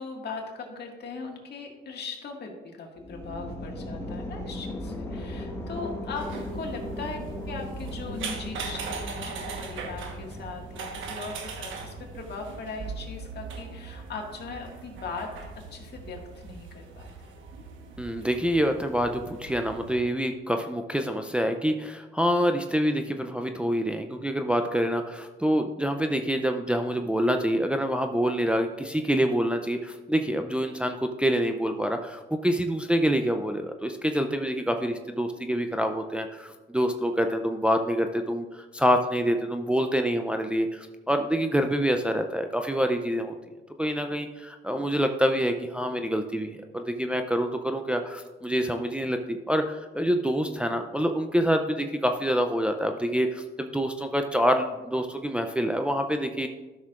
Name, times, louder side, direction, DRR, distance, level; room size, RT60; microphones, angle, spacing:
voice 1, 0.0-17.3, left 4 dB, 55° left, 1 dB, 1.8 m, -39 dB
sound 1, 3.0-12.9, left 1 dB, 15° left, 1.5 m, -38 dB
sound 2, 6.1-20.0, right 4 dB, 75° right, 1.2 m, -40 dB
voice 2, 18.0-43.3 43.8-56.5, equal, 5° right, 5 dB, 0.5 m, -26 dB
13.0 x 6.3 x 2.5 m, 1.2 s
cardioid pair, 90°, 20 cm